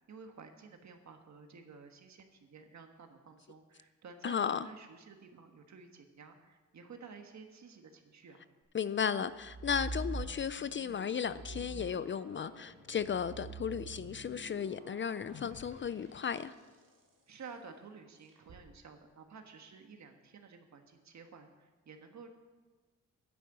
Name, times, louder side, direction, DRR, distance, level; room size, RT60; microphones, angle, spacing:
voice 1, 0.1-8.5 17.3-22.3, right 5 dB, 60° right, 5 dB, 1.4 m, -52 dB
voice 2, 4.2-4.7 8.7-16.5, left 7 dB, 40° left, 15 dB, 0.4 m, -35 dB
sound 1, 9.3-10.8 11.2-16.7 18.3-18.6, right 2 dB, 90° right, 2.1 m, -45 dB
sound 2, 9.8-17.3, left 6 dB, 90° left, 1.1 m, -57 dB
10.5 x 8.4 x 7.9 m, 1.3 s
wide cardioid pair, 115°, 31 cm